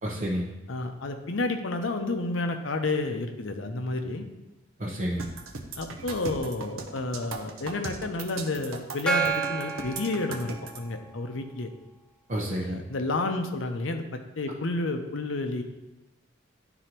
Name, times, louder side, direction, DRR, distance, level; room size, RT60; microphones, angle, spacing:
voice 1, 0.0-0.5 4.8-5.3 12.3-12.8, equal, 40° right, -5 dB, 0.8 m, -30 dB
voice 2, 0.7-4.2 5.8-11.7 12.6-15.6, left 2 dB, 70° left, 6 dB, 0.7 m, -30 dB
sound 1, 5.2-10.8, right 4 dB, 85° right, 0.8 m, -38 dB
Gong, 9.1-11.1, right 6 dB, 5° left, 0.5 m, -30 dB
11.0 x 3.9 x 2.9 m, 1.0 s
head